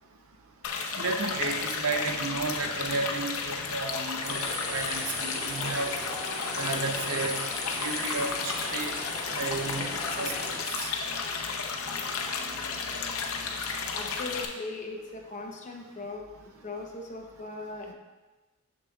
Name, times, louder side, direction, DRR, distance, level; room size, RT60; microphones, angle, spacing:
sound 1, 0.6-14.4, left 5 dB, 65° left, 0.6 m, -33 dB
voice 1, 0.9-5.9 6.5-7.4 7.8-8.9 9.3-10.3 10.7-10.9, right 3 dB, 65° right, 4 dB, 0.6 m, -33 dB
sound 2, 4.2-10.6, left 1 dB, ahead, 1.7 m, -38 dB
voice 2, 13.9-16.3 16.6-17.9, left 3 dB, 35° left, 1 dB, 0.7 m, -39 dB
6.7 x 6.4 x 2.3 m, 1.2 s
head